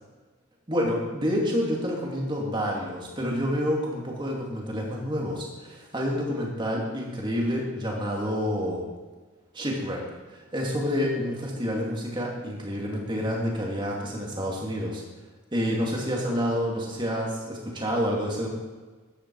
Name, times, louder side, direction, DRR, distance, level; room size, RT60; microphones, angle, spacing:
voice 1, 0.7-8.8 9.5-10.0 10.3-15.0 15.5-18.5, equal, 20° right, -2 dB, 2.6 m, -28 dB
13.5 x 10.5 x 4.8 m, 1.3 s
head